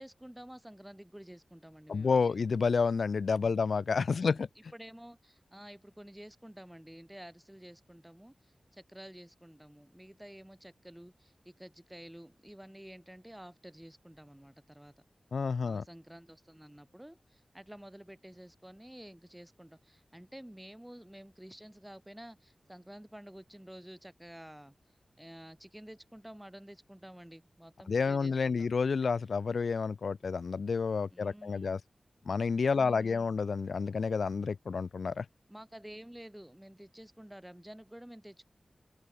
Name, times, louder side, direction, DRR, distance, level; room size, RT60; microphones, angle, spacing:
voice 1, 0.0-2.4 3.4-3.6 4.1-4.4 4.7-14.9 15.6-24.7 25.2-28.7 31.1-31.8 32.7-33.3 35.5-38.5, equal, 10° right, 3.5 m, -51 dB
voice 2, 1.9-4.5 15.3-15.8 27.9-31.8 32.3-35.3, left 5 dB, 85° left, 0.4 m, -30 dB
open air
cardioid pair, 50°, 0 cm